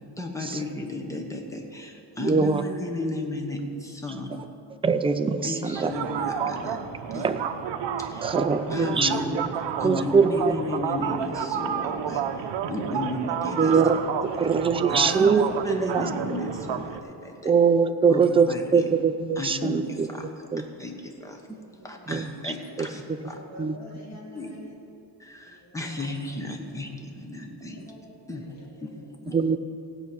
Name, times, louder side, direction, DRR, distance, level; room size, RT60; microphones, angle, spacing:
voice 1, 0.2-4.4 5.4-6.8 7.1-7.3 8.0-8.3 8.7-9.4 9.8-13.8 14.9-17.5 18.1-18.8 19.4-20.3 20.8-23.4 24.3-24.5 25.2-27.8 28.3-28.4 28.8-28.9, left 1 dB, 5° left, 2 dB, 1.1 m, -34 dB
voice 2, 2.2-2.6 4.8-5.9 7.2-7.4 8.2-9.1 9.8-10.4 13.5-16.1 17.4-20.7 22.1-22.5 22.8-22.9 23.6-23.8 29.3-29.6, right 5 dB, 15° right, 8 dB, 0.3 m, -23 dB
voice 3, 4.1-4.4 7.0-7.3 8.2-8.9 21.8-22.1 23.2-24.9 25.4-26.1 27.6-29.1, left 1 dB, 35° left, -2 dB, 2.4 m, -48 dB
sound 1, 5.8-17.0, right 8 dB, 70° right, 0.8 m, -30 dB
16.0 x 6.0 x 8.5 m, 2.7 s
wide cardioid pair, 175°, 44 cm